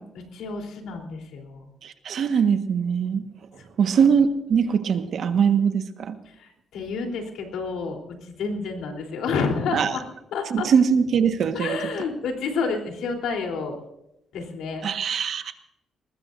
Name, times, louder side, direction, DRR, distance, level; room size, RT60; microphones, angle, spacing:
voice 1, 0.2-1.7 6.4-10.0 10.3-10.7 11.5-13.8 14.3-14.9, left 4 dB, 90° left, 2 dB, 3.6 m, -29 dB
voice 2, 1.8-3.2 3.8-6.2 9.7-10.0 10.5-11.8 14.8-15.5, right 6 dB, 60° right, 8 dB, 1.4 m, -22 dB
22.5 x 20.0 x 2.6 m, 0.86 s
cardioid pair, 125°, 0 cm